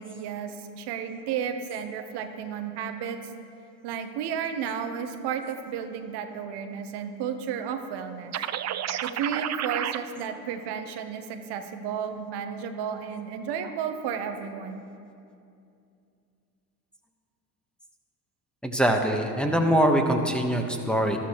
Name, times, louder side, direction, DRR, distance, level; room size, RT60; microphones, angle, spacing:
voice 1, 0.0-3.2 3.8-8.3 9.0-14.8, right 7 dB, 70° right, 7 dB, 0.9 m, -33 dB
sound 1, 8.3-10.0, right 11 dB, 40° right, 0.5 m, -30 dB
voice 2, 18.6-21.2, right 1 dB, ahead, 2 dB, 1.1 m, -23 dB
13.0 x 12.0 x 3.0 m, 2.5 s
supercardioid pair, 75°, 41 cm